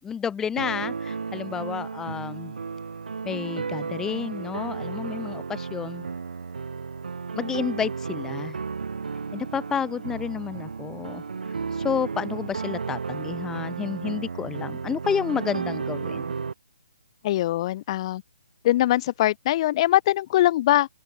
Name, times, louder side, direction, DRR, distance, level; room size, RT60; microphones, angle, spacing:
voice 1, 0.0-2.5 3.2-6.0 7.3-8.6 9.3-11.2 11.7-16.2, left 7 dB, 10° left, 2.8 m, -30 dB
sound 1, 0.6-16.5, right 5 dB, 65° right, 6.8 m, -33 dB
voice 2, 17.2-18.2 18.6-20.9, left 14 dB, 35° left, 6.0 m, -22 dB
open air
figure-of-eight pair, 140°, 5 cm